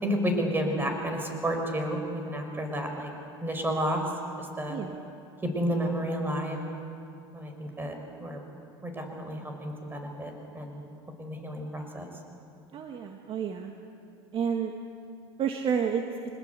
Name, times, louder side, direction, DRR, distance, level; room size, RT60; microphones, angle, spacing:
voice 1, 0.0-3.1 3.4-4.0 4.4-4.8 5.4-6.6 7.3-7.9 8.2-8.4 8.8-10.8 11.2-12.1, equal, 15° right, 4 dB, 5.6 m, -31 dB
voice 2, 12.7-13.7 14.3-14.7 15.4-16.0, right 7 dB, 40° right, 3 dB, 1.7 m, -30 dB
25.0 x 20.5 x 8.3 m, 2.5 s
supercardioid pair, 105°, 14 cm